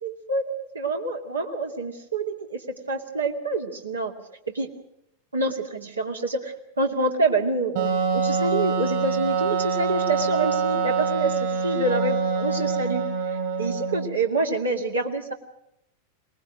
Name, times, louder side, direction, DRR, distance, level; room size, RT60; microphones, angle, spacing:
voice 1, 0.0-4.1 4.5-4.7 5.3-15.3, right 2 dB, 75° right, 2 dB, 2.5 m, -27 dB
Wind instrument woodwind instrument, 7.7-14.2, right 5 dB, 55° right, 7.2 m, -25 dB
23.0 x 20.0 x 6.3 m, 0.81 s
figure-of-eight pair, 90°, 0 cm